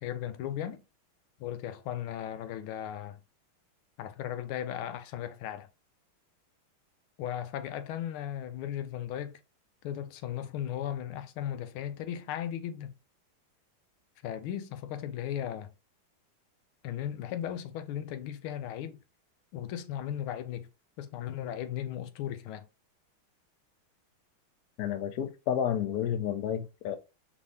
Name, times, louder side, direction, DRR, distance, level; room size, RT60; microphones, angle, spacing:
voice 1, 0.0-0.8 1.4-3.2 4.0-5.7 7.2-9.4 9.8-12.9 14.2-15.7 16.8-19.0 19.5-20.7 21.0-22.7, left 10 dB, 90° left, 1.5 m, -36 dB
voice 2, 24.8-27.0, left 9 dB, 65° left, 0.9 m, -31 dB
5.2 x 2.8 x 3.3 m
omnidirectional pair, 2.3 m